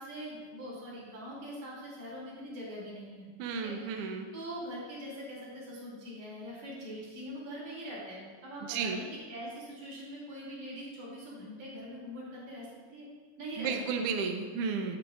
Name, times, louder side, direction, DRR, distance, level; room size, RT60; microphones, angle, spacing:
voice 1, 0.0-3.3 3.6-13.1 13.4-13.7 14.0-14.1, equal, 70° right, -7 dB, 4.2 m, -43 dB
voice 2, 3.4-4.3 8.7-9.0 13.6-15.0, right 5 dB, 90° right, 4 dB, 1.3 m, -33 dB
9.5 x 8.7 x 2.4 m, 1.5 s
omnidirectional pair, 3.5 m